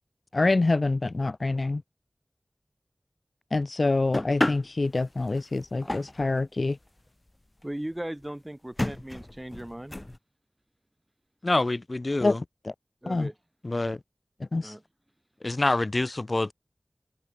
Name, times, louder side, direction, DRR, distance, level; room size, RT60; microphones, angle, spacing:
voice 1, 0.3-1.8 3.5-6.8 12.2-12.3 13.1-13.3 14.5-14.8, left 3 dB, 65° left, 0.8 m, -26 dB
sound 1, 4.1-6.4 7.0-7.1 7.3-7.4 7.6-7.7 8.2-8.3 8.7-10.2, left 1 dB, 30° left, 1.0 m, -32 dB
voice 2, 7.6-10.0 13.0-13.4 14.6-14.8, right 1 dB, 20° right, 5.1 m, -37 dB
voice 3, 11.4-12.4 13.6-14.0 15.4-16.5, left 2 dB, 50° left, 1.6 m, -26 dB
wide cardioid pair, 60°, 0 cm